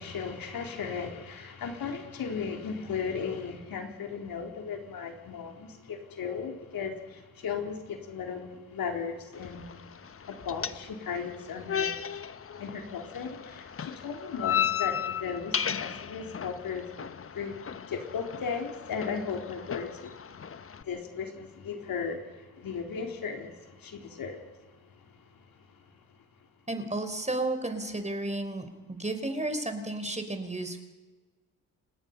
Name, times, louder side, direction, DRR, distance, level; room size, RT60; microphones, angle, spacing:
voice 1, 0.0-9.9 10.2-20.4 20.7-24.7 25.1-25.4, left 6 dB, 60° left, 2 dB, 4.3 m, -36 dB
sound 1, 9.3-20.8, left 8 dB, 35° left, 1.1 m, -35 dB
voice 2, 26.7-30.8, right 2 dB, 15° right, 8 dB, 4.7 m, -33 dB
30.0 x 17.0 x 5.6 m, 1.3 s
hypercardioid pair, 50°, 40 cm